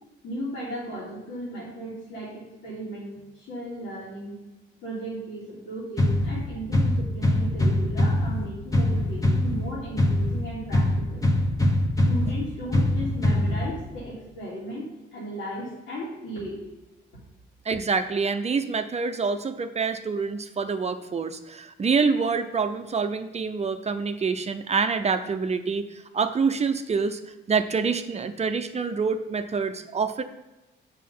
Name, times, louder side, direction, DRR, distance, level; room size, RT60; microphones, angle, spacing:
voice 1, 0.2-4.4 4.8-11.2 12.0-16.6, equal, 70° left, -9 dB, 3.2 m, -36 dB
sound 1, 6.0-14.0, left 1 dB, 15° left, 1.1 m, -24 dB
voice 2, 17.6-27.2 27.5-30.2, right 5 dB, 35° right, 8 dB, 0.7 m, -26 dB
7.5 x 5.7 x 5.5 m, 1.0 s
cardioid pair, 90°, 20 cm